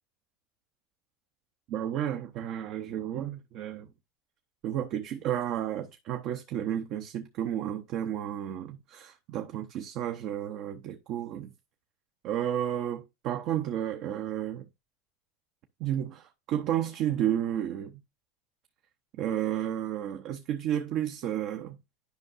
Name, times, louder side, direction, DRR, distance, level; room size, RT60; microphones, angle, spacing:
voice 1, 1.7-3.9 4.6-11.5 12.2-14.7 15.8-18.0 19.2-21.8, right 10 dB, 55° right, 0.7 m, -32 dB
10.5 x 5.3 x 2.5 m
supercardioid pair, 105°, 0 cm